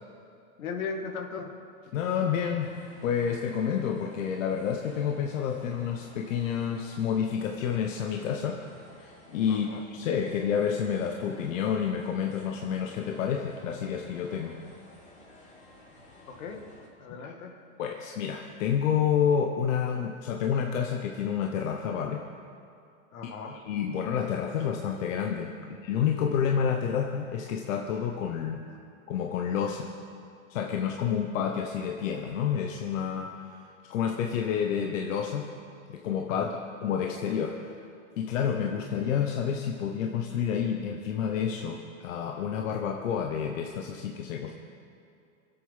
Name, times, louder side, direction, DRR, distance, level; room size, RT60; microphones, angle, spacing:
voice 1, 0.6-1.5 9.5-9.8 16.3-16.7 17.0-17.6 23.1-23.6 36.3-36.6, left 5 dB, 80° left, 4 dB, 2.1 m, -38 dB
voice 2, 1.9-2.7 3.0-8.6 9.0-14.6 17.2-17.4 17.8-22.2 23.2-28.6 29.1-29.9 30.5-35.5 35.9-36.6 36.8-37.8 38.2-44.5, left 7 dB, 65° left, 2 dB, 1.2 m, -29 dB
sound 1, 2.6-16.9, left 1 dB, 15° left, 2.9 m, -54 dB
24.5 x 8.5 x 5.7 m, 2.5 s
supercardioid pair, 140°, 42 cm